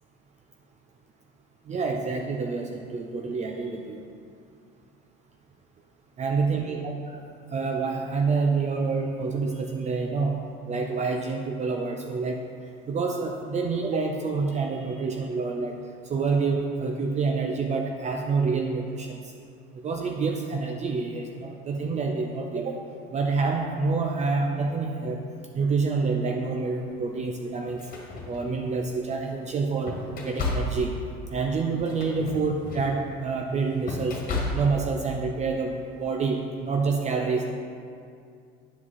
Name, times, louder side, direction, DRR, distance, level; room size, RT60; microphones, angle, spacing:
voice 1, 1.7-4.1 6.2-6.8 7.5-10.4 10.7-12.4 12.9-15.8 16.1-19.3 19.7-22.8 23.1-25.2 25.5-27.9 28.3-30.0 30.2-31.0 31.3-34.2 34.5-37.6, right 4 dB, 35° right, 2 dB, 0.6 m, -27 dB
sound 1, 26.7-26.9 27.6-28.9 29.4-35.0, left 2 dB, 45° left, 1.7 m, -34 dB
9.1 x 4.9 x 4.1 m, 2.4 s
supercardioid pair, 95°, 21 cm